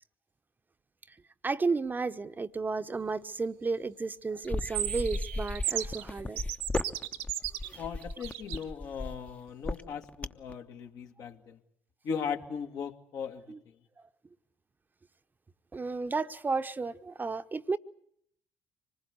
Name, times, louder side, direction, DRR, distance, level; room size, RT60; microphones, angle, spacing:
voice 1, 1.4-6.4 13.5-13.6 15.7-17.8, right 4 dB, 30° right, 1.0 m, -32 dB
sound 1, 4.4-10.5, left 2 dB, 20° left, 1.0 m, -35 dB
sound 2, 4.4-6.0 6.4-8.6, right 13 dB, 80° right, 0.9 m, -35 dB
voice 2, 7.8-11.6 12.0-13.8, left 6 dB, 65° left, 2.0 m, -38 dB
25.5 x 20.0 x 8.3 m
hypercardioid pair, 55°, 6 cm